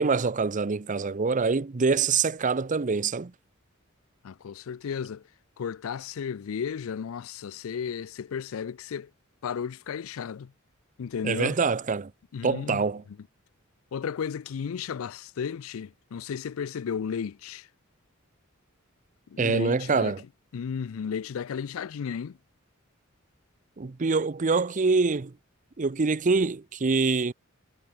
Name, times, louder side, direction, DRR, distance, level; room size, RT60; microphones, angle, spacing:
voice 1, 0.0-3.3 11.2-12.1 12.4-13.0 19.4-20.2 23.8-25.3 25.8-27.3, right 4 dB, 35° right, 0.6 m, -25 dB
voice 2, 4.2-5.2 5.6-9.1 9.4-10.5 11.0-11.6 12.3-12.8 13.9-17.7 19.3-20.2 20.5-22.4, left 7 dB, 75° left, 0.4 m, -34 dB
head